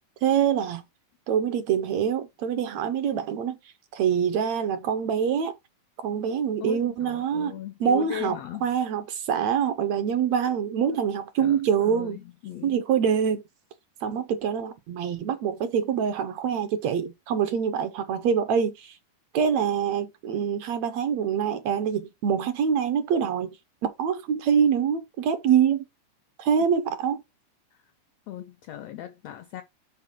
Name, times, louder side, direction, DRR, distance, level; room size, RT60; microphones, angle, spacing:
voice 1, 0.2-0.8 1.3-3.6 3.9-5.5 6.0-7.5 7.8-12.2 12.6-13.4 14.0-19.0 19.3-23.5 23.8-25.8 26.4-27.2, right 7 dB, 70° right, 1.8 m, -25 dB
voice 2, 6.6-8.7 10.9-11.1 11.4-12.8 28.3-29.6, left 13 dB, 85° left, 1.4 m, -38 dB
5.8 x 4.9 x 6.0 m
omnidirectional pair, 3.6 m